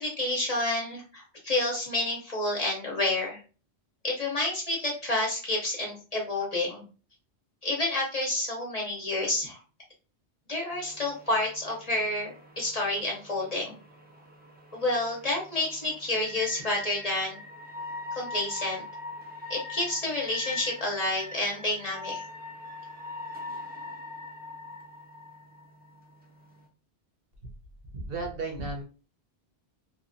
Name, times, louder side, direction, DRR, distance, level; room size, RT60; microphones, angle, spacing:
voice 1, 0.0-3.4 4.0-6.8 7.6-9.6 10.5-13.8 14.7-17.4 18.1-18.8 19.5-22.2, left 2 dB, 45° left, -1 dB, 0.6 m, -29 dB
sound 1, 10.7-26.7, left 2 dB, 15° right, 0.4 m, -42 dB
voice 2, 27.9-28.8, right 3 dB, 60° right, 1 dB, 0.9 m, -33 dB
2.7 x 2.3 x 2.5 m, 0.36 s
omnidirectional pair, 1.1 m